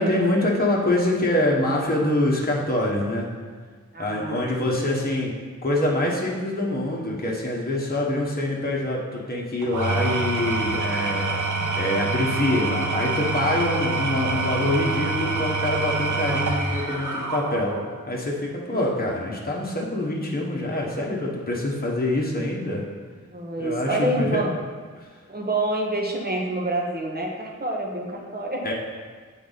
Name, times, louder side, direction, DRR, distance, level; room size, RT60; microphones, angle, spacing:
voice 1, 0.0-3.3 4.0-5.3 5.6-11.4 11.7-17.8 18.1-22.8 23.6-24.4 28.6-28.7, left 1 dB, 30° left, -3 dB, 1.2 m, -25 dB
voice 2, 3.9-4.9 18.7-19.0 23.3-24.5 25.3-28.6, right 1 dB, 30° right, -1 dB, 1.1 m, -27 dB
Engine / Tools, 9.6-17.9, right 3 dB, 80° right, 0.7 m, -26 dB
8.0 x 4.0 x 4.0 m, 1.5 s
wide cardioid pair, 70°, 30 cm